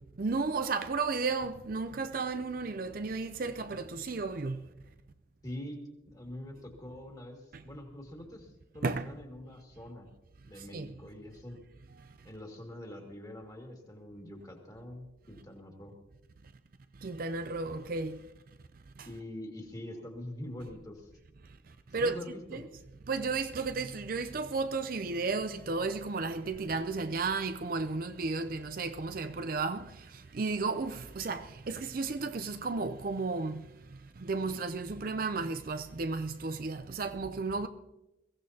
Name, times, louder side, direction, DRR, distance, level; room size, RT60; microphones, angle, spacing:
voice 1, 0.2-4.6 7.5-7.6 8.8-9.1 10.6-10.9 17.0-18.2 19.0-19.1 21.9-22.2 22.5-22.7 23.1-37.7, right 4 dB, 45° right, 0.5 m, -33 dB
voice 2, 5.4-10.1 10.5-11.6 12.2-16.0 19.1-21.1 22.0-22.6, left 1 dB, 20° left, 2.0 m, -44 dB
22.0 x 15.5 x 2.8 m
head